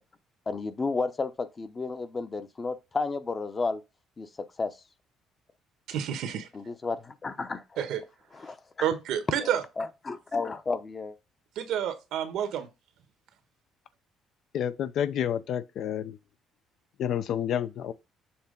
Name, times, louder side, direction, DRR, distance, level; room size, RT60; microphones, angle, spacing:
voice 1, 0.5-3.8 4.2-4.3 4.6-4.7 6.5-7.6 8.3-8.6 9.4-11.2, left 3 dB, 25° left, 0.8 m, -32 dB
voice 2, 5.9-6.5 7.8-8.0 8.8-9.6 11.5-12.7, right 9 dB, 75° right, 1.2 m, -29 dB
voice 3, 14.5-16.2 17.0-17.9, left 9 dB, 65° left, 0.6 m, -29 dB
7.1 x 3.0 x 5.2 m
cardioid pair, 115°, 0 cm